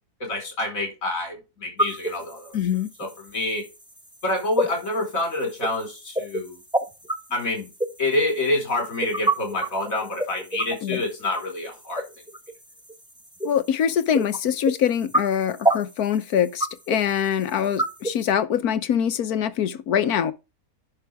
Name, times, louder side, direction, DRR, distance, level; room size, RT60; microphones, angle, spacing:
voice 1, 0.2-2.6 3.0-3.6 4.2-6.6 7.3-7.7 8.0-12.0, left 2 dB, 60° left, 4.8 m, -27 dB
sound 1, 1.8-18.3, right 2 dB, 5° right, 1.0 m, -30 dB
voice 2, 2.5-2.9 10.8-11.0 13.4-20.3, left 9 dB, 75° left, 1.4 m, -24 dB
10.5 x 6.0 x 3.5 m
omnidirectional pair, 1.6 m